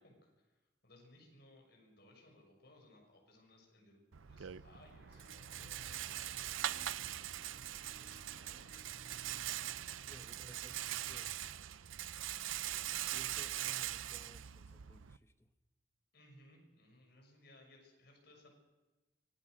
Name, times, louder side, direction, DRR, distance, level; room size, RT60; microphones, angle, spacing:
voice 1, 0.0-6.7 7.0-7.5 8.2-8.7 16.1-18.5, left 1 dB, 55° left, 1 dB, 6.5 m, -64 dB
Rattle, 4.1-15.2, right 12 dB, 85° right, 0.6 m, -42 dB
sound 1, 5.0-11.1, right 1 dB, 60° right, 5.6 m, -59 dB
voice 2, 10.1-11.3 13.1-15.5, left 1 dB, 15° left, 9 dB, 1.1 m, -58 dB
24.5 x 17.0 x 6.5 m, 1.1 s
head